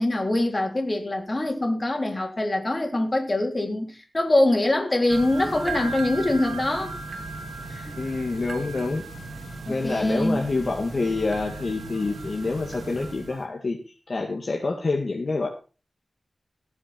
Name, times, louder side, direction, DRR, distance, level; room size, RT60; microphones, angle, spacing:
voice 1, 0.0-6.9 7.7-8.0 9.7-10.4, left 1 dB, 30° left, 3.6 m, -24 dB
sound 1, 5.1-13.4, right 3 dB, 85° right, 2.5 m, -37 dB
voice 2, 8.0-9.0 9.7-13.8 14.1-15.5, left 3 dB, 55° left, 2.1 m, -27 dB
18.0 x 7.3 x 4.4 m
wide cardioid pair, 95°, 0 cm